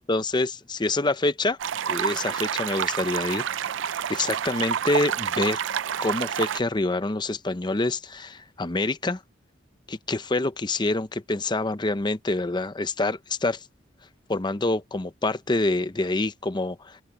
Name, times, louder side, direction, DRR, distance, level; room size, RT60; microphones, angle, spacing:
voice 1, 0.0-1.6 1.9-3.5 4.1-5.6 6.0-9.2 9.9-13.6 14.3-17.0, left 2 dB, 25° left, 0.7 m, -26 dB
sound 1, 1.6-6.6, right 8 dB, 85° right, 0.5 m, -28 dB
open air
head